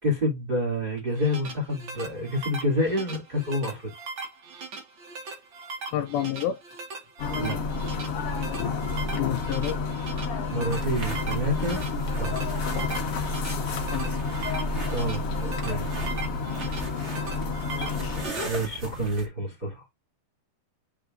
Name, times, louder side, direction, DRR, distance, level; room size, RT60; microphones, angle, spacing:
voice 1, 0.0-3.9 7.3-7.6 10.5-11.8 12.1-12.5 14.9-15.9 18.4-19.8, equal, 15° right, 2.6 m, -28 dB
sound 1, 1.0-18.4, right 4 dB, 85° right, 1.0 m, -39 dB
voice 2, 5.9-6.6 9.1-9.8 13.9-14.2 14.8-14.9 18.0-18.2, left 12 dB, 80° left, 2.3 m, -29 dB
sound 2, 7.2-18.3, left 4 dB, 55° left, 1.7 m, -30 dB
sound 3, 10.7-19.3, right 2 dB, 65° right, 0.6 m, -39 dB
9.0 x 4.8 x 2.6 m
omnidirectional pair, 4.6 m